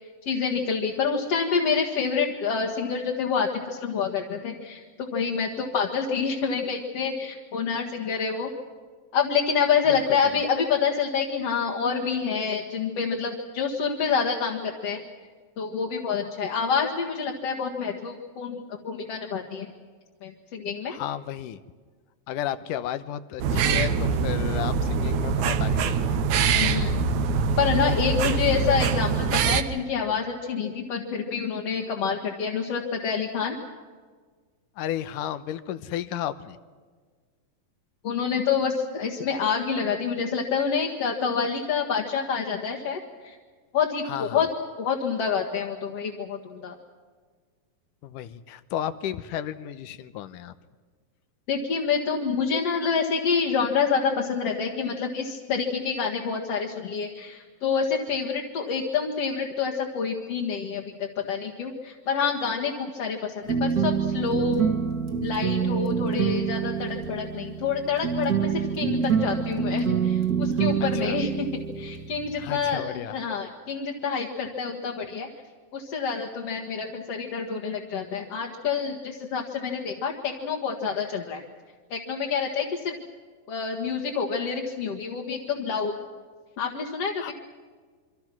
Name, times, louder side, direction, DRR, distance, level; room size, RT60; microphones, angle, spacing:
voice 1, 0.3-8.5 9.1-15.0 15.6-19.7 20.2-20.9 26.6-27.0 27.6-33.6 38.0-43.4 43.7-44.5 44.8-46.7 51.5-64.6 65.2-71.5 71.8-75.3 75.7-81.4 81.9-82.9 83.5-85.9 86.6-87.3, left 6 dB, 50° left, 0 dB, 2.5 m, -27 dB
voice 2, 20.9-21.6 22.3-26.2 28.3-28.4 34.8-36.6 44.1-44.5 48.0-50.5 70.9-71.2 72.4-73.2 87.2-87.3, left 11 dB, 75° left, 14 dB, 2.4 m, -33 dB
sound 1, 23.4-29.6, right 5 dB, 70° right, 2.1 m, -24 dB
sound 2, 63.4-72.7, right 6 dB, 35° right, 1.9 m, -26 dB
27.5 x 25.0 x 6.1 m, 1.5 s
omnidirectional pair, 4.0 m